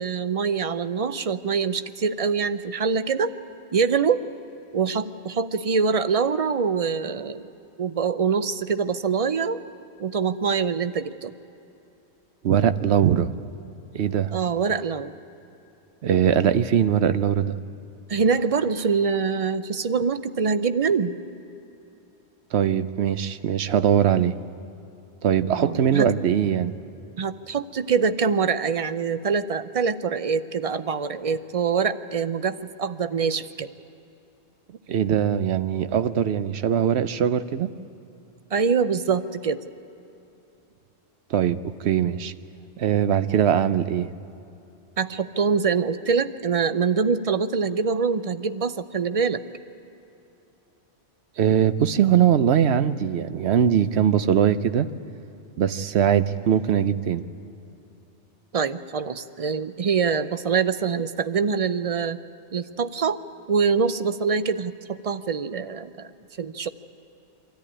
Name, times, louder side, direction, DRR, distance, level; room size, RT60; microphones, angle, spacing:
voice 1, 0.0-3.3 3.7-4.2 4.7-7.5 7.8-9.6 10.0-11.3 14.3-15.1 18.1-21.1 25.6-26.1 27.2-33.7 38.5-39.6 45.0-49.4 58.5-62.2 62.5-63.2 63.5-66.1 66.4-66.7, right 5 dB, 40° right, 12 dB, 0.5 m, -24 dB
voice 2, 12.4-13.3 13.9-14.3 16.0-17.6 22.5-24.4 25.2-26.7 34.9-37.7 41.3-42.3 42.8-44.1 51.4-54.9 55.6-57.2, right 9 dB, 70° right, 12 dB, 0.9 m, -21 dB
24.0 x 14.0 x 9.9 m, 2.8 s
omnidirectional pair, 1.2 m